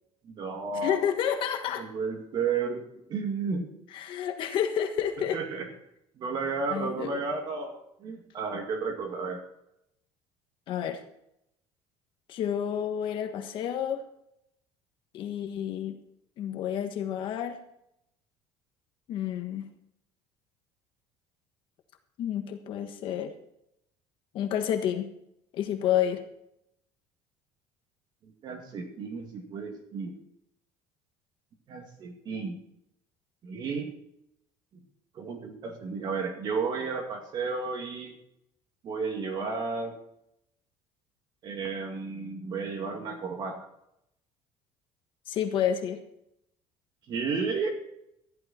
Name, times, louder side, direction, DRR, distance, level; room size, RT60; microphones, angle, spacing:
voice 1, 0.2-1.1 1.8-3.7 5.3-5.7 6.2-9.4 28.2-30.1 31.7-32.6 33.4-33.9 34.7-34.8 35.1-38.1 38.8-39.9 41.4-43.7 47.1-47.7, right 4 dB, 45° right, 3 dB, 2.2 m, -33 dB
voice 2, 0.8-1.8 3.9-5.4 6.7-7.2 10.7-11.0 12.3-14.0 15.1-16.0 16.4-17.6 19.1-19.7 22.2-23.3 24.3-25.1 25.5-26.2 45.3-46.0, left 9 dB, 55° left, 6 dB, 1.3 m, -29 dB
14.0 x 11.5 x 4.3 m, 0.79 s
cardioid pair, 150°, 10 cm